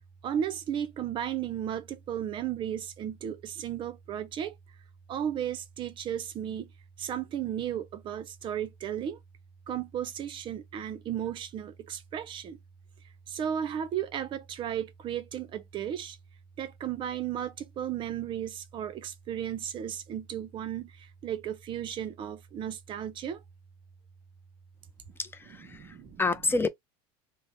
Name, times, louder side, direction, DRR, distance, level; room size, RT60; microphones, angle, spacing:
voice 1, 0.2-4.5 5.1-6.7 7.0-9.2 9.7-12.6 13.3-16.2 16.6-23.4 25.7-26.2, right 9 dB, 35° right, 0.6 m, -34 dB
voice 2, 25.2-26.7, left 3 dB, 15° left, 0.4 m, -29 dB
3.3 x 2.1 x 3.9 m
supercardioid pair, 125°, 14 cm